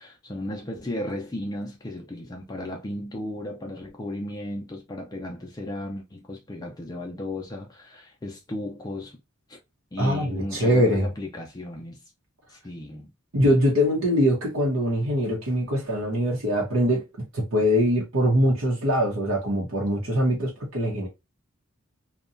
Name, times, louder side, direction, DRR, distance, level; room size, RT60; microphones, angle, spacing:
voice 1, 0.0-9.2 9.5-9.6 9.9-12.0 12.5-13.1, left 1 dB, 20° left, 0.4 m, -35 dB
voice 2, 10.0-11.0 13.3-17.0 17.3-21.1, equal, 80° right, 0.8 m, -23 dB
2.8 x 2.2 x 2.4 m
head